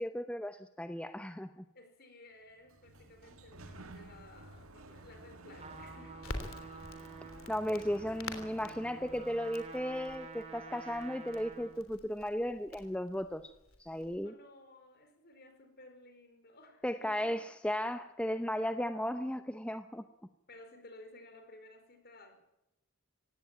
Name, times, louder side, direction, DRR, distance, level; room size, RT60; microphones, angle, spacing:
voice 1, 0.0-1.6 7.5-13.5 13.8-14.3 16.8-20.0, equal, 5° left, 9 dB, 0.7 m, -35 dB
voice 2, 1.7-6.7 14.2-17.4 20.5-22.4, left 2 dB, 45° left, 7 dB, 4.6 m, -56 dB
Sliding door, 2.5-9.9, right 2 dB, 70° right, 2.0 m, -53 dB
Trumpet, 5.5-11.8, right 3 dB, 30° right, 3.5 m, -50 dB
Crackle, 6.2-14.1, left 2 dB, 65° left, 3.4 m, -49 dB
18.0 x 16.5 x 9.0 m, 0.89 s
head